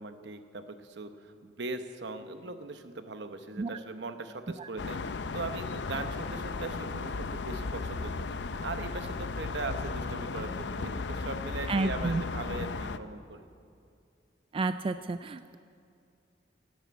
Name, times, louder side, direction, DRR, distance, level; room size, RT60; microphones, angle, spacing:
voice 1, 0.0-13.5, right 3 dB, 70° right, 8 dB, 1.0 m, -40 dB
sound 1, 4.8-13.0, left 4 dB, 70° left, 0.5 m, -35 dB
voice 2, 11.7-12.2 14.5-15.6, right 3 dB, 30° right, 11 dB, 0.3 m, -30 dB
13.5 x 11.5 x 8.4 m, 2.4 s
head